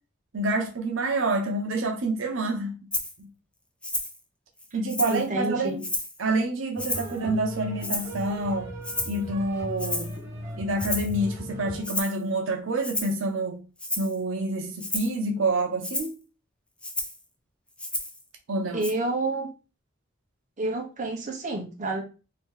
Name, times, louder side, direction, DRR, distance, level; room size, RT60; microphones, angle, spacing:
voice 1, 0.3-2.9 3.2-3.3 4.7-5.8 6.2-8.7 9.1-10.2 10.6-13.6 14.0-16.2 18.5-18.9, right 2 dB, 75° right, 0.7 m, -27 dB
Rattle (instrument), 2.9-3.1 3.8-4.2 4.6-5.3 5.8-6.2 6.8-7.2 7.8-8.3 8.8-9.2 9.8-10.2 10.8-11.2 11.8-12.2 12.8-13.2 13.8-14.1 14.8-15.2 15.8-16.1 16.8-17.2 17.8-18.2 18.8-18.9, left 1 dB, 5° left, 0.3 m, -31 dB
voice 2, 5.1-5.8 18.7-19.5 20.6-22.0, right 2 dB, 40° right, 0.8 m, -29 dB
sound 1, 6.8-11.8, equal, 15° right, 1.9 m, -37 dB
2.8 x 2.7 x 3.7 m
head